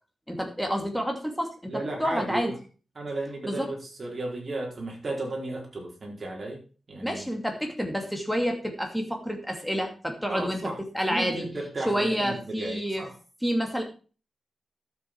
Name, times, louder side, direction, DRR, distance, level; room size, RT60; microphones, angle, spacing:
voice 1, 0.3-1.7 2.0-2.5 3.4-3.7 7.0-10.7 10.9-11.5 11.9-13.0 13.4-13.8, equal, ahead, 2 dB, 2.4 m, -28 dB
voice 2, 1.7-2.5 2.9-6.6 6.9-7.3 10.3-10.8 11.0-13.1, right 2 dB, 35° right, -1 dB, 4.3 m, -34 dB
12.0 x 7.5 x 4.6 m, 0.37 s
wide cardioid pair, 145°, 0 cm